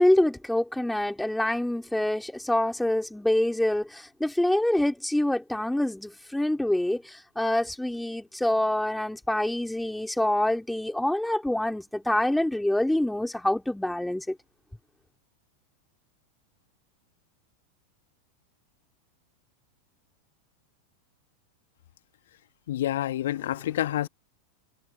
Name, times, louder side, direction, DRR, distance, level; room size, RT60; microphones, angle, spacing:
voice 1, 0.0-14.4, left 1 dB, 5° left, 4.2 m, -26 dB
voice 2, 22.7-24.1, left 13 dB, 60° left, 1.9 m, -28 dB
figure-of-eight pair, 90°, 0 cm